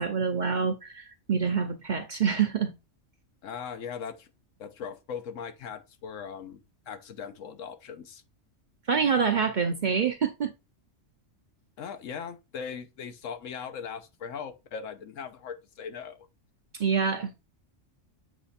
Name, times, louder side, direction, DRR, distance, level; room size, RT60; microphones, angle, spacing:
voice 1, 0.0-2.7 8.8-10.5 16.7-17.3, right 6 dB, 50° right, 0.6 m, -26 dB
voice 2, 3.4-4.3 4.6-8.2 11.8-16.3, left 6 dB, 80° left, 1.2 m, -39 dB
7.4 x 3.3 x 4.1 m
omnidirectional pair, 1.3 m